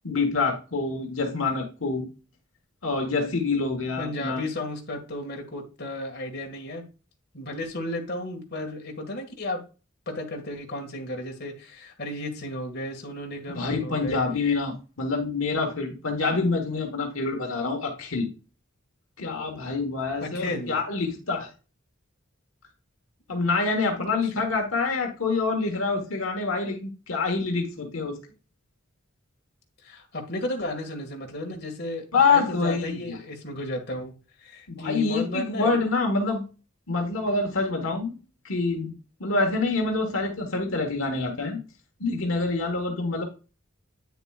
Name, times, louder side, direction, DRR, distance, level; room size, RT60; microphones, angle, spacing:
voice 1, 0.0-2.0 2.8-4.4 13.5-18.3 19.2-21.5 23.3-28.2 32.1-33.2 34.7-36.4 36.9-38.2 38.4-38.9 39.2-41.6 42.0-43.2, left 3 dB, 80° left, 3 dB, 1.4 m, -26 dB
voice 2, 4.0-6.8 7.3-9.6 10.1-14.2 20.2-20.7 29.8-34.1 34.4-35.7, left 1 dB, 55° left, 2 dB, 1.8 m, -33 dB
9.1 x 6.8 x 2.4 m, 0.33 s
head